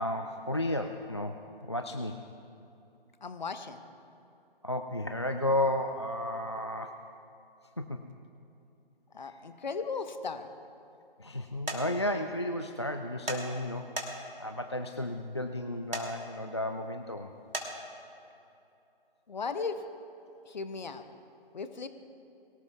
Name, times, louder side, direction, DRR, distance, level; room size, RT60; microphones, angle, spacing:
voice 1, 0.0-2.2 4.6-7.0 7.8-8.0 9.2-9.4 11.2-17.3, left 1 dB, 30° left, 6 dB, 0.3 m, -33 dB
voice 2, 3.2-3.8 9.1-10.5 19.3-19.8 20.4-21.0 21.5-21.9, left 4 dB, 50° left, 9 dB, 1.0 m, -36 dB
sound 1, 11.7-11.8 13.3-13.4 14.0-14.4 15.9-16.1 17.5-17.7, right 2 dB, 70° right, 2.6 m, -34 dB
23.0 x 18.0 x 2.4 m, 2.8 s
figure-of-eight pair, 145°, 29 cm